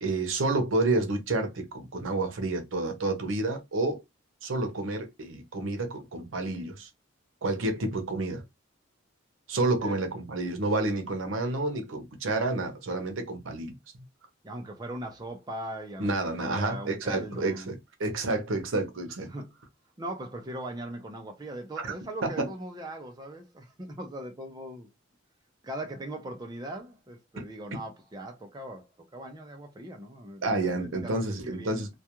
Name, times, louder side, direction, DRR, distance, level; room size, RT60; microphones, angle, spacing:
voice 1, 0.0-4.0 4.4-6.9 7.4-8.4 9.5-13.7 16.0-19.3 21.8-21.9 22.2-22.5 30.4-31.9, right 2 dB, 80° right, 0.7 m, -29 dB
voice 2, 14.4-17.7 19.3-19.5 20.0-24.9 25.6-31.8, right 1 dB, 20° right, 0.4 m, -40 dB
2.3 x 2.2 x 2.8 m
head